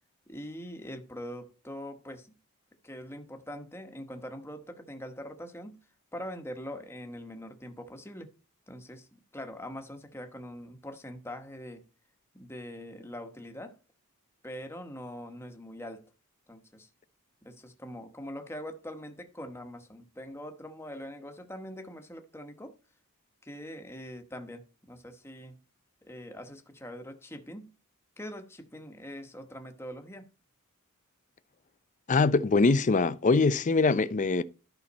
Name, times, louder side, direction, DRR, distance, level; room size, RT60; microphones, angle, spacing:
voice 1, 0.3-2.3 2.8-5.8 6.1-8.3 8.7-11.8 12.3-13.8 14.4-16.0 16.5-16.9 17.4-22.7 23.4-25.6 26.0-27.7 28.2-30.2, equal, 10° left, 1.1 m, -43 dB
voice 2, 32.1-34.4, left 3 dB, 35° left, 0.5 m, -23 dB
11.5 x 5.7 x 4.1 m
head